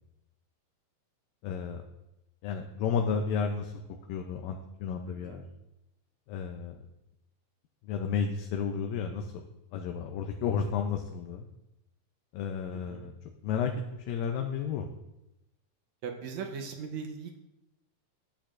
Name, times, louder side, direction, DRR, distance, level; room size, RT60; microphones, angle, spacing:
voice 1, 1.4-1.8 2.4-3.7 4.1-5.4 6.3-6.8 7.9-9.4 9.7-11.5 12.3-13.1 13.4-13.7 14.1-14.9, left 6 dB, 85° left, 4 dB, 2.4 m, -32 dB
voice 2, 5.1-5.4 12.7-13.1 16.0-17.4, right 6 dB, 70° right, 3 dB, 1.8 m, -39 dB
13.0 x 8.3 x 2.5 m, 0.91 s
omnidirectional pair, 4.0 m